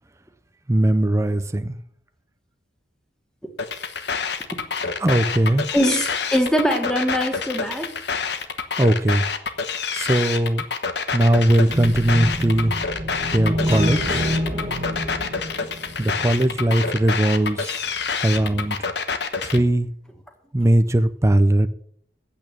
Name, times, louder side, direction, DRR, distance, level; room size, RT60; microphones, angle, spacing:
voice 1, 0.7-1.8 5.0-5.7 8.8-9.2 9.9-10.6 11.1-12.8 13.3-14.3 16.0-17.9 18.2-18.9 19.4-19.9 20.5-21.7, right 1 dB, 15° right, 0.5 m, -19 dB
sound 1, 3.6-19.6, left 5 dB, 65° left, 1.1 m, -27 dB
voice 2, 5.7-7.9, equal, 5° left, 1.8 m, -22 dB
sound 2, 11.7-16.6, equal, 40° right, 1.6 m, -27 dB
8.7 x 8.5 x 9.0 m
head